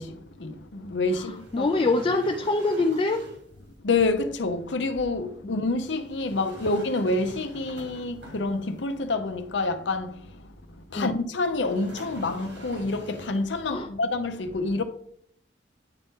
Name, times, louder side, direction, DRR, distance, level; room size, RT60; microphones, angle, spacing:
voice 1, 0.0-1.7 3.8-14.8, left 3 dB, 85° left, 0.7 m, -28 dB
voice 2, 1.1-3.2 5.4-5.5 10.9-11.1 13.7-13.9, left 2 dB, 30° left, 0.4 m, -25 dB
sound 1, 1.3-3.5 6.1-8.8 11.5-13.5, equal, 85° right, 2.8 m, -45 dB
9.1 x 4.1 x 3.7 m
head